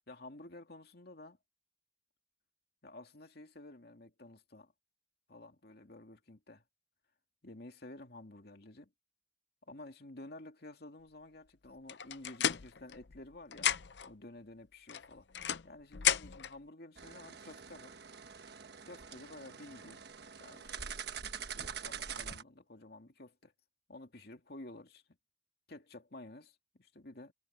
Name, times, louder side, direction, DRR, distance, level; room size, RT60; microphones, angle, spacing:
voice 1, 0.1-1.4 2.8-4.7 5.3-6.6 7.4-8.9 9.7-13.7 14.0-15.3 15.6-18.0 18.9-20.1 20.4-21.0 21.5-23.5 23.9-25.0 25.7-27.3, left 2 dB, 60° left, 2.4 m, -52 dB
sound 1, 11.9-13.3 13.5-14.1 14.9-16.5, left 9 dB, 75° left, 0.6 m, -33 dB
sound 2, 17.0-22.4, right 7 dB, 65° right, 1.3 m, -45 dB
head